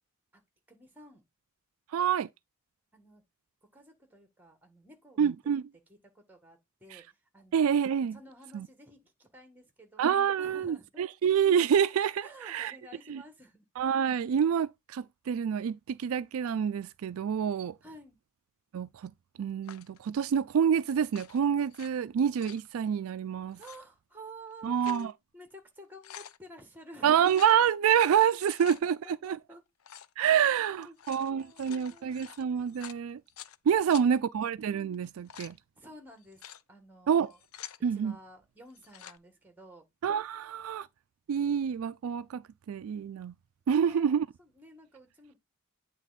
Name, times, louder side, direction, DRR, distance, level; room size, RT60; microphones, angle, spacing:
voice 1, 0.7-1.2 2.9-3.2 3.7-5.2 5.4-5.6 5.9-7.8 8.1-11.0 12.2-13.6 17.8-18.2 23.6-27.3 28.5-28.6 28.9-29.6 30.3-32.1 35.8-36.4 36.7-37.4 37.9-39.9 43.7-45.4, right 1 dB, 10° right, 1.7 m, -52 dB
voice 2, 1.9-2.3 5.2-5.6 6.9-7.0 7.5-8.2 8.5-8.7 10.0-12.7 13.1-13.2 13.8-17.8 18.7-19.1 19.4-23.6 24.6-25.1 27.0-29.4 30.2-33.2 33.7-35.6 37.1-37.3 37.8-38.2 40.0-40.9 41.3-42.4 42.7-43.3 43.7-44.3, right 8 dB, 80° right, 0.3 m, -27 dB
sound 1, 19.6-20.0 21.0-21.9 22.2-22.7 23.5-23.8 24.5-25.1 25.5-25.6 25.8-26.4 27.2-27.6 28.3-28.8 29.8-30.1 30.8-33.6 33.9-34.1 34.9-35.6 36.2-36.6 37.2-37.8 38.7-39.2, left 10 dB, 80° left, 0.5 m, -48 dB
9.0 x 3.5 x 4.1 m
head